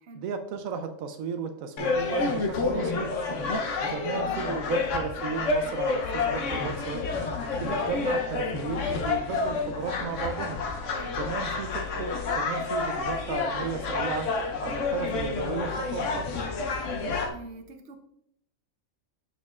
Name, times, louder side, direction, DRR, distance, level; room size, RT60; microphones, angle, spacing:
voice 1, 0.1-3.1 3.9-7.0 7.5-10.6 11.1-14.3 14.6-16.4, right 5 dB, 85° right, 6 dB, 1.0 m, -34 dB
sound 1, 1.8-17.3, left 4 dB, 70° left, 1.1 m, -29 dB
voice 2, 4.2-4.6 10.9-11.2 17.3-18.0, right 3 dB, 60° right, 6 dB, 1.0 m, -44 dB
6.7 x 6.4 x 2.4 m, 0.72 s
omnidirectional pair, 1.4 m